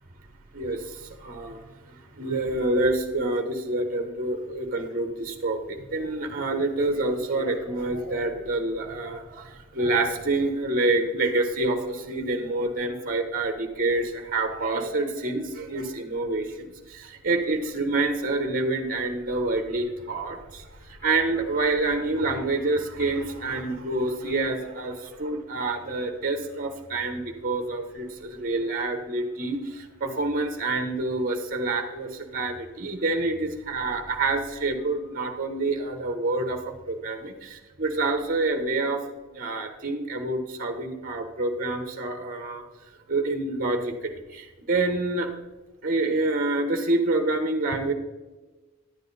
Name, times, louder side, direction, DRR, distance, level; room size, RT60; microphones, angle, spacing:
voice 1, 0.5-39.0 39.3-42.6 43.1-45.3 45.8-47.9, right 2 dB, 40° right, 5 dB, 1.1 m, -27 dB
11.0 x 8.9 x 4.1 m, 1.2 s
head